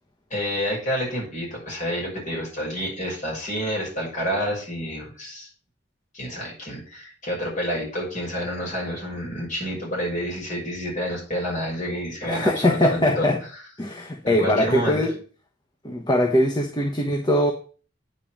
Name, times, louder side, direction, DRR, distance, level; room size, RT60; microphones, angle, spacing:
voice 1, 0.3-5.5 6.1-13.3 14.2-15.0, equal, 45° left, -3 dB, 6.3 m, -29 dB
voice 2, 12.2-13.4 13.8-15.2 15.8-17.5, left 1 dB, 25° left, 2 dB, 1.1 m, -21 dB
9.2 x 5.3 x 7.3 m, 0.40 s
head